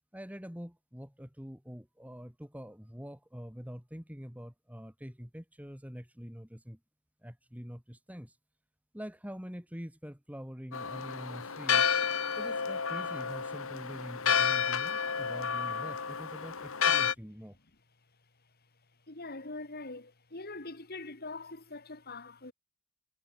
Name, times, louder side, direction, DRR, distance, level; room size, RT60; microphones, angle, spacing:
voice 1, 0.1-6.8 7.2-8.4 8.9-11.9 12.4-17.6, equal, 5° right, 2.9 m, -45 dB
Church bell, 10.7-17.1, left 7 dB, 65° left, 1.6 m, -30 dB
voice 2, 19.1-22.5, left 2 dB, 45° left, 2.4 m, -43 dB
head